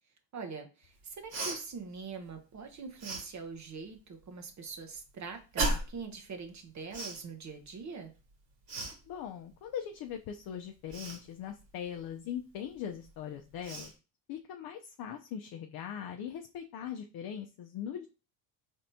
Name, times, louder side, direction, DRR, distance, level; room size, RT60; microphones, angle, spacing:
voice 1, 0.3-8.1, right 5 dB, 40° right, 6 dB, 0.8 m, -43 dB
Cough, 1.3-1.6 3.0-3.2 5.6-6.0 6.9-7.2 8.7-8.9 10.9-11.2 13.0-13.1 13.6-13.9, right 2 dB, 70° right, 1.9 m, -34 dB
voice 2, 9.1-13.9 14.3-18.1, left 9 dB, 55° left, 5 dB, 0.6 m, -40 dB
4.1 x 3.5 x 2.7 m, 0.33 s
supercardioid pair, 70°, 45 cm